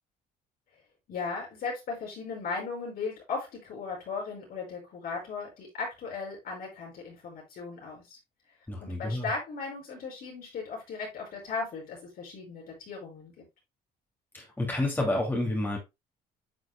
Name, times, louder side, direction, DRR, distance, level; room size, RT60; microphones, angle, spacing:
voice 1, 1.1-8.2 8.8-13.4, left 4 dB, 60° left, 5.4 m, -37 dB
voice 2, 8.7-9.3 14.3-15.8, left 1 dB, 10° left, 2.6 m, -29 dB
9.8 x 6.3 x 2.3 m
cardioid pair, 110°, 17 cm